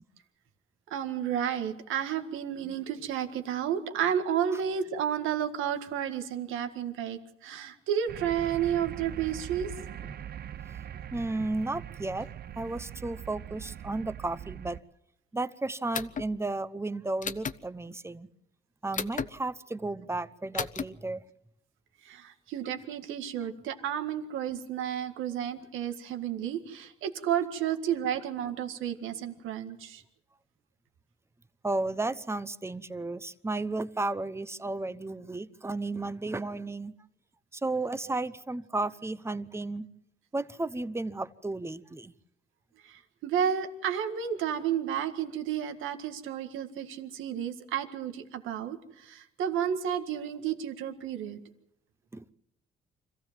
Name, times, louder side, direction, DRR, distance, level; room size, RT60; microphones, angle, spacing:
voice 1, 0.9-9.7 22.0-30.0 38.1-38.2 42.8-51.4, right 9 dB, 90° right, 7 dB, 1.8 m, -32 dB
sound 1, 8.1-14.8, right 10 dB, 50° right, 0.7 m, -42 dB
voice 2, 11.1-12.3 12.6-14.8 15.3-18.3 18.8-21.2 31.6-36.9 37.5-39.9 40.3-42.1 52.1-52.2, right 2 dB, 15° right, 14 dB, 0.9 m, -33 dB
sound 2, 15.9-16.3 17.2-17.6 18.9-19.3 20.5-20.8, left 6 dB, 40° left, 0.9 m, -33 dB
25.5 x 15.0 x 7.4 m, 0.80 s
cardioid pair, 90°, 20 cm